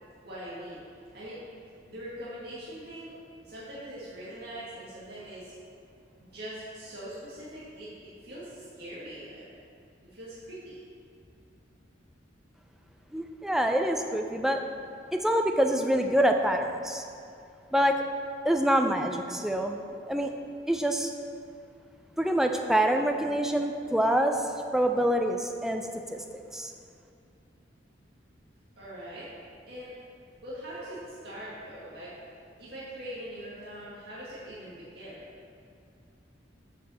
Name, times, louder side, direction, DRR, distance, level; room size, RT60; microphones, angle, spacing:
voice 1, 0.2-5.5 6.2-9.5 10.0-10.8 28.7-29.3 29.7-29.9 30.4-32.2 32.6-35.3, equal, 60° right, -8 dB, 1.7 m, -42 dB
voice 2, 13.1-14.6 15.1-17.0 17.7-18.0 18.4-19.8 20.1-20.3 20.7-21.1 22.2-26.7, right 1 dB, ahead, 4 dB, 0.4 m, -26 dB
7.1 x 5.0 x 6.8 m, 2.5 s
head